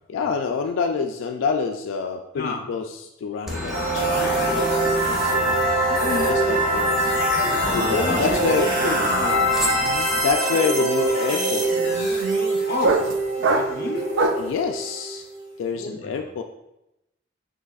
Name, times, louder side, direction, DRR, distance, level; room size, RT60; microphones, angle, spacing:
voice 1, 0.1-2.9 3.2-4.1 4.6-5.5 6.2-6.9 7.6-8.7 9.8-12.3 14.4-15.3 15.6-16.4, left 5 dB, 90° left, 5 dB, 0.3 m, -27 dB
Aircraft, 3.5-10.3, left 1 dB, ahead, 0.6 m, -33 dB
sound 1, 3.7-15.5, right 1 dB, 70° right, 1.4 m, -23 dB
voice 2, 4.1-7.1 7.8-9.8 12.7-13.0 13.4-14.1 15.7-16.3, left 2 dB, 50° left, 2 dB, 0.6 m, -32 dB
sound 2, 7.8-8.1 8.3-14.6, right 3 dB, 85° right, 0.4 m, -27 dB
6.5 x 2.9 x 2.3 m, 0.89 s
head